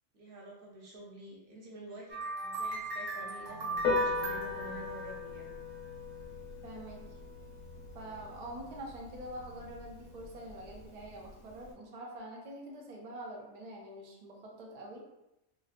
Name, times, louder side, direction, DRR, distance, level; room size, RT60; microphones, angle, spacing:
voice 1, 0.1-5.5, right 1 dB, 50° right, -3 dB, 0.8 m, -48 dB
sound 1, 2.1-5.9, right 2 dB, 90° right, 1.2 m, -38 dB
sound 2, 3.5-10.9, left 2 dB, 35° left, 0.6 m, -53 dB
Piano, 3.7-11.7, left 3 dB, 80° left, 1.0 m, -39 dB
voice 2, 6.6-7.0 7.9-15.0, right 1 dB, 70° right, -1 dB, 0.3 m, -45 dB
3.1 x 2.4 x 2.4 m, 0.92 s
omnidirectional pair, 1.3 m